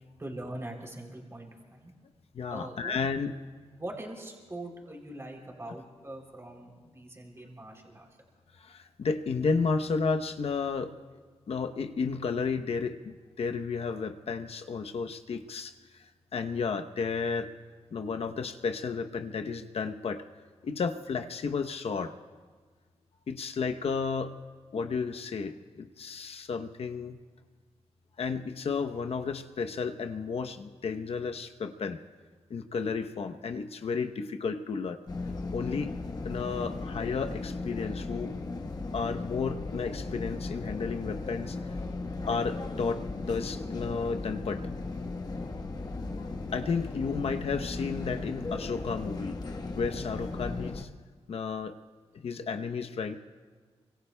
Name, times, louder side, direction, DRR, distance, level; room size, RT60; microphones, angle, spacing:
voice 1, 0.2-1.9 2.5-3.0 3.8-8.1, right 1 dB, 25° right, 0 dB, 3.2 m, -42 dB
voice 2, 2.3-3.3 8.6-10.9 11.5-17.5 17.9-20.2 20.6-22.1 23.3-24.3 24.7-27.2 28.2-32.0 32.5-35.0 35.5-36.0 36.2-38.3 38.9-41.7 42.3-44.7 46.2-49.4 49.7-50.9 51.3-51.8 52.1-53.2, left 5 dB, 65° left, 7 dB, 0.8 m, -32 dB
sound 1, 35.1-50.8, left 3 dB, 35° left, 1.1 m, -36 dB
26.5 x 24.5 x 2.2 m, 1.5 s
cardioid pair, 80°, 11 cm